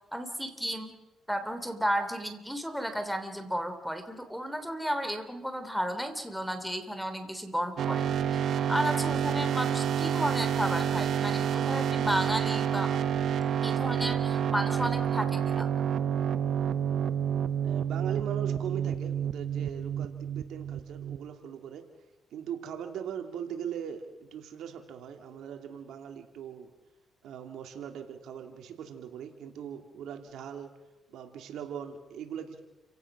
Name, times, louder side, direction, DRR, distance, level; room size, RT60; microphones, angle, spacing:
voice 1, 0.1-1.0 1.3-8.0 8.7-12.9 13.6-15.7, equal, ahead, 8 dB, 3.4 m, -33 dB
sound 1, 7.8-21.3, right 8 dB, 65° right, 1.0 m, -29 dB
voice 2, 17.6-21.8 22.3-26.7 27.2-30.7 31.1-32.6, right 8 dB, 80° right, 5 dB, 2.8 m, -40 dB
30.0 x 17.0 x 6.2 m, 1.0 s
cardioid pair, 90°, 0 cm